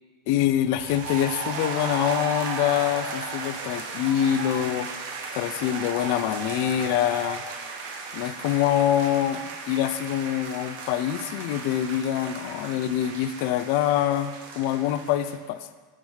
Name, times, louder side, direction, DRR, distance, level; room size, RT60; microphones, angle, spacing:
voice 1, 0.3-4.9 5.3-7.4 8.1-15.7, left 11 dB, 55° left, 11 dB, 0.3 m, -25 dB
sound 1, 0.8-15.4, right 4 dB, 60° right, 0.7 m, -35 dB
7.1 x 3.5 x 4.9 m, 1.4 s
supercardioid pair, 160°, 0 cm